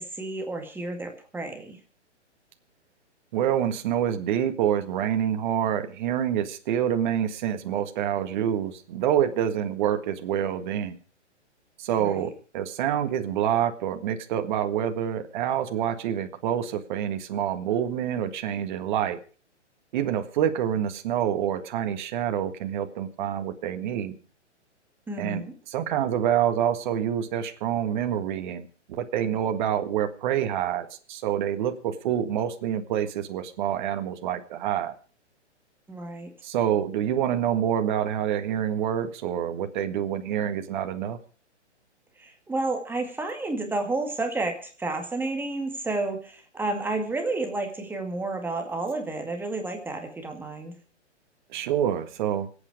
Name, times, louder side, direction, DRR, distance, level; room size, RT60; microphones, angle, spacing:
voice 1, 0.0-1.8 12.0-12.3 25.1-25.5 35.9-36.3 42.2-50.7, right 2 dB, 5° right, 3 dB, 2.1 m, -31 dB
voice 2, 3.3-10.9 11.8-19.2 19.9-24.1 25.2-34.9 36.4-41.2 51.5-52.5, right 10 dB, 40° right, 7 dB, 1.7 m, -27 dB
26.0 x 8.9 x 5.0 m, 0.39 s
hypercardioid pair, 135°, 36 cm